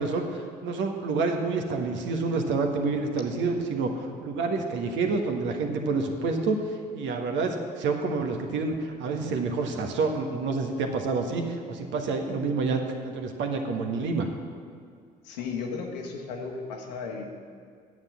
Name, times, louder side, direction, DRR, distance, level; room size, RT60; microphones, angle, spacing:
voice 1, 0.0-6.6 6.9-14.3, right 4 dB, 60° right, 4 dB, 1.5 m, -28 dB
voice 2, 15.2-17.3, left 5 dB, 80° left, 1 dB, 1.4 m, -35 dB
9.5 x 7.4 x 7.5 m, 2.1 s
hypercardioid pair, 55°, 21 cm